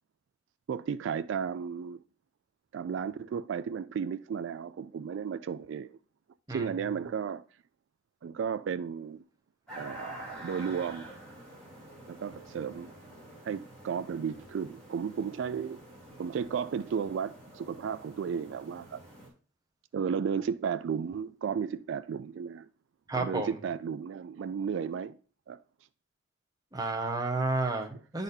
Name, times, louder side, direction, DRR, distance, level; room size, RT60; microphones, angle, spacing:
voice 1, 0.7-2.0 2.7-6.0 6.5-7.4 8.2-9.2 9.8-11.1 12.1-12.9 13.4-15.8 16.2-19.0 19.9-22.7 23.1-25.2 25.5-25.6, right 7 dB, 80° right, 0.3 m, -34 dB
sound 1, 9.7-19.3, right 1 dB, 5° left, 2.8 m, -48 dB
voice 2, 23.1-23.5 26.7-28.2, right 2 dB, 20° right, 0.9 m, -31 dB
11.0 x 4.1 x 2.6 m
head